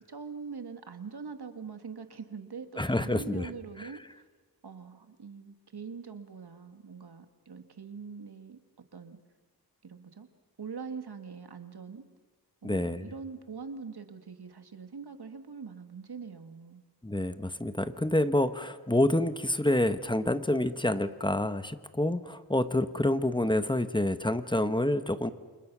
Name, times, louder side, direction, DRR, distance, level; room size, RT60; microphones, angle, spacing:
voice 1, 0.1-4.3 4.6-8.6 8.9-9.2 9.8-10.3 10.6-12.0 12.6-16.8, right 5 dB, 70° right, 8 dB, 2.0 m, -43 dB
voice 2, 2.8-3.5 12.6-13.1 17.0-25.3, left 1 dB, 10° left, 11 dB, 1.2 m, -28 dB
29.0 x 27.0 x 6.2 m, 1.3 s
wide cardioid pair, 90°, 40 cm